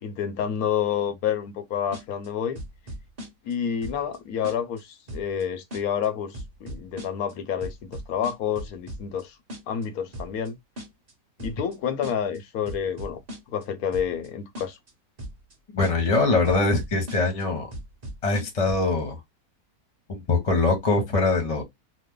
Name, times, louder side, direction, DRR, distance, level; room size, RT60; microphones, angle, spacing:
voice 1, 0.0-2.6 3.4-9.4 9.7-10.6 11.4-13.2 13.5-14.8, left 8 dB, 75° left, 1.1 m, -29 dB
sound 1, 1.9-2.3 2.6-3.5 3.8-4.2 4.4-4.8 5.1-5.4 5.7-6.1 6.3-7.3 7.6-9.2 9.5-9.9 10.1-10.5 10.8-11.1 11.4-11.8 12.0-12.4 12.7-13.6 13.9-14.3 14.6-14.9 15.2-15.5 15.8-16.2 16.4-17.4 17.7-18.9, equal, 30° right, 1.0 m, -38 dB
voice 2, 15.7-17.7 18.2-19.2 20.1-21.6, left 3 dB, 30° left, 0.8 m, -23 dB
3.1 x 2.1 x 3.6 m
omnidirectional pair, 1.6 m